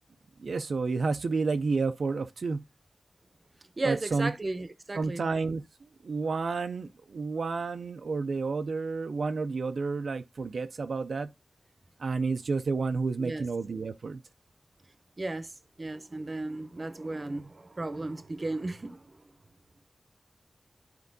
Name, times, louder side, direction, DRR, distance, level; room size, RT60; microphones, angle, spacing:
voice 1, 0.4-2.6 3.8-4.3 4.9-5.6 6.0-11.3 12.0-14.2, right 4 dB, 75° right, 0.3 m, -30 dB
voice 2, 3.8-5.3 13.2-13.5 15.2-15.5 15.8-19.2, right 2 dB, 35° right, 0.6 m, -35 dB
12.0 x 4.4 x 2.6 m
wide cardioid pair, 110°, 0 cm